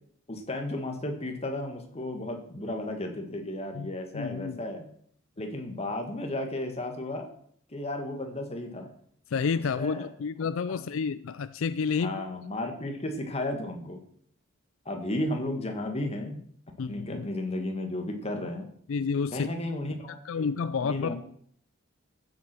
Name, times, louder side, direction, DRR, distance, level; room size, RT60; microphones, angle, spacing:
voice 1, 0.3-4.9 5.4-7.3 7.7-8.9 9.7-10.1 10.7-10.8 12.0-14.0 14.9-16.4 16.9-18.7 19.3-20.5 20.8-21.1, left 1 dB, 30° left, 4 dB, 2.0 m, -34 dB
voice 2, 3.7-4.6 9.3-12.2 16.8-17.3 18.9-19.5 20.1-21.1, left 5 dB, 70° left, 15 dB, 0.4 m, -30 dB
13.5 x 8.2 x 6.2 m, 0.64 s
head